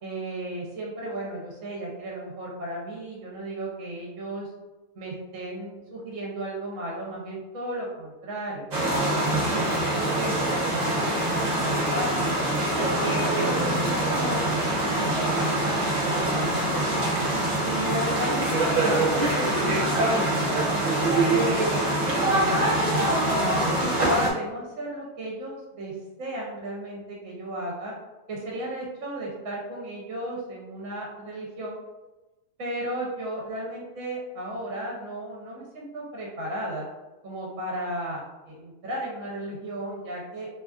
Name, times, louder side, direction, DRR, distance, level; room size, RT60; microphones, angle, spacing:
voice 1, 0.0-4.5 5.0-9.7 10.1-12.3 12.8-14.4 15.0-15.8 16.0-17.1 17.6-20.7 21.3-27.9 28.3-31.8 32.6-36.9 37.2-40.5, right 1 dB, 70° right, -3 dB, 0.9 m, -34 dB
sound 1, 8.7-24.3, right 1 dB, 85° right, 0.3 m, -24 dB
2.6 x 2.3 x 2.3 m, 1.1 s
omnidirectional pair, 1.5 m